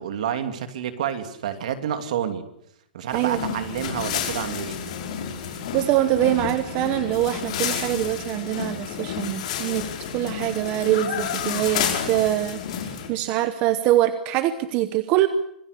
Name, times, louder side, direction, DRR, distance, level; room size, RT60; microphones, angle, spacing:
voice 1, 0.0-2.4 2.9-5.0, right 9 dB, 50° right, 8 dB, 2.8 m, -29 dB
sound 1, 3.1-13.1, left 8 dB, 40° left, 5.4 m, -30 dB
voice 2, 5.7-9.9 10.1-15.3, right 14 dB, 20° right, 11 dB, 0.9 m, -24 dB
26.0 x 19.0 x 8.3 m, 0.76 s
hypercardioid pair, 180°, 5 cm